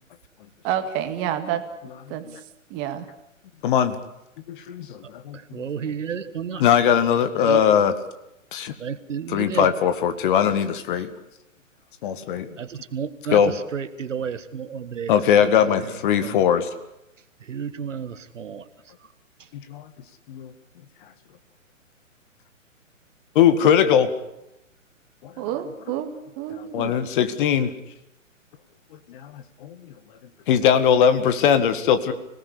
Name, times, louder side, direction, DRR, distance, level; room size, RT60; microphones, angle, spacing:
voice 1, 0.6-1.7 2.1-2.3 2.7-3.1 25.4-26.9, right 10 dB, 25° right, 9 dB, 2.2 m, -28 dB
voice 2, 3.6-4.0 4.5-5.0 6.6-8.0 8.5-8.7 9.3-11.1 12.0-12.5 13.3-13.6 15.1-16.7 19.5-19.8 20.3-20.5 23.4-24.1 25.2-25.3 26.7-27.7 29.1-29.8 30.5-32.1, left 8 dB, 40° left, 11 dB, 1.9 m, -20 dB
voice 3, 5.5-6.6 7.5-7.6 8.8-9.7 12.6-13.4 13.7-15.1 16.2-16.4 17.5-18.6, right 7 dB, 65° right, 12 dB, 1.7 m, -31 dB
26.0 x 18.5 x 8.6 m, 0.86 s
figure-of-eight pair, 125°, 40 cm